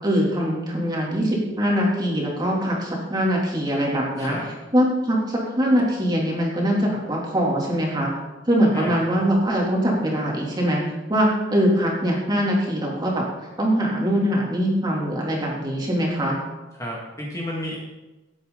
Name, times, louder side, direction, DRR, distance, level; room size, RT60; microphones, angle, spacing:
voice 1, 0.0-4.4 4.7-8.1 8.5-10.8 11.1-16.4, equal, 20° right, -3 dB, 3.1 m, -22 dB
voice 2, 4.2-4.5 8.7-9.2 16.8-17.8, equal, 15° left, -4 dB, 2.1 m, -32 dB
17.5 x 8.6 x 4.0 m, 1.1 s
head